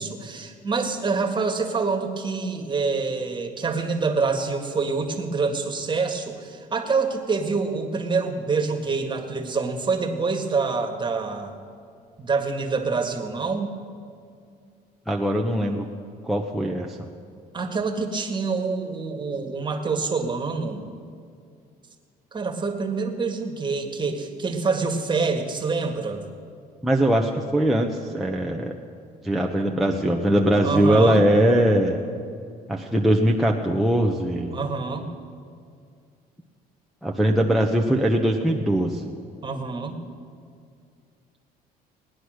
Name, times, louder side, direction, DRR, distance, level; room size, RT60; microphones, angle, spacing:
voice 1, 0.0-11.6 12.2-13.7 17.5-20.8 22.3-26.2 30.6-31.2 34.5-35.1 39.4-40.0, right 4 dB, 25° right, 4 dB, 1.7 m, -26 dB
voice 2, 15.1-15.9 16.2-17.1 26.8-28.7 29.2-32.0 32.7-34.6 37.0-39.1, right 1 dB, ahead, 0 dB, 0.9 m, -21 dB
18.5 x 10.0 x 6.4 m, 2.3 s
cardioid pair, 110°, 17 cm